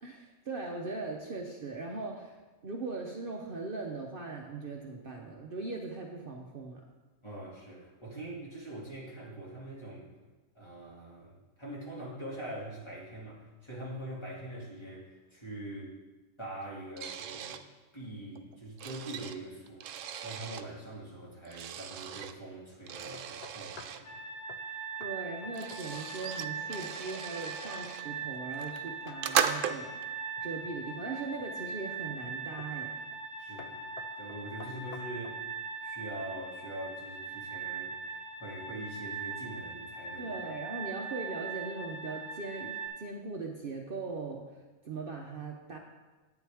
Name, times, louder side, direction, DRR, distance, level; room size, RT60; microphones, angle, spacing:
voice 1, 0.0-2.3 2.6-6.8 25.0-30.0 30.4-32.9 40.2-44.4 44.8-45.8, right 3 dB, 50° right, 0 dB, 0.9 m, -39 dB
voice 2, 7.2-10.1 10.5-15.9 16.4-17.6 17.9-24.2 24.7-24.8 33.4-33.9 34.2-35.4 35.8-40.4, right 1 dB, 20° left, -5 dB, 2.3 m, -43 dB
sound 1, 17.0-17.6 18.4-20.7 21.5-22.3 22.9-24.0 25.0-25.1 25.3-28.1 28.5-30.1, right 8 dB, 90° right, 1.0 m, -36 dB
sound 2, 23.1-24.1 24.5-24.7 25.0-25.2 25.4-26.1 26.4-26.8 30.1-30.8 31.4-31.8 32.6-32.8 33.1-33.3 33.6-35.4, left 5 dB, 55° left, 0.4 m, -51 dB
sound 3, 24.0-42.9, right 5 dB, 70° left, 1.6 m, -41 dB
10.5 x 9.2 x 3.5 m, 1.2 s
omnidirectional pair, 1.3 m